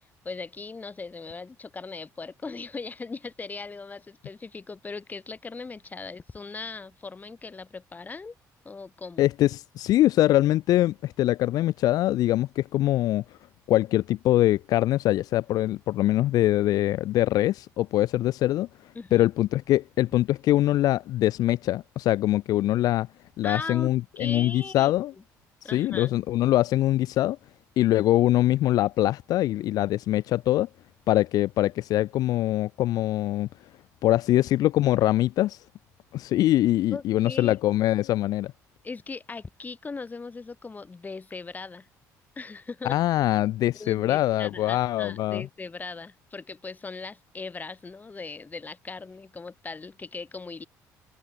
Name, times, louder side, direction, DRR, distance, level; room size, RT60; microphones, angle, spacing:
voice 1, 0.2-8.3 8.6-9.3 19.0-19.3 23.4-24.9 25.6-26.2 36.9-37.6 38.8-41.9 42.4-43.0 43.8-50.6, left 4 dB, 25° left, 2.0 m, -39 dB
voice 2, 9.2-13.2 13.7-18.7 19.1-23.1 23.4-25.1 25.6-27.4 27.8-30.7 31.1-33.5 34.0-35.6 36.1-38.5 42.8-45.5, left 14 dB, 70° left, 0.4 m, -23 dB
cardioid pair, 90°, 7 cm